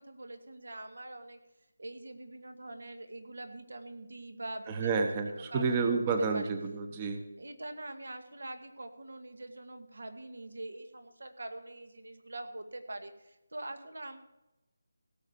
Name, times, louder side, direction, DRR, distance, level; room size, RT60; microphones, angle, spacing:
voice 1, 0.0-1.4 1.8-4.9 5.5-6.0 6.3-6.4 7.4-14.2, right 2 dB, 85° right, 8 dB, 1.9 m, -44 dB
voice 2, 4.7-7.2, right 4 dB, 20° right, 7 dB, 0.8 m, -30 dB
17.0 x 6.3 x 6.7 m, 0.95 s
figure-of-eight pair, 170°, 0 cm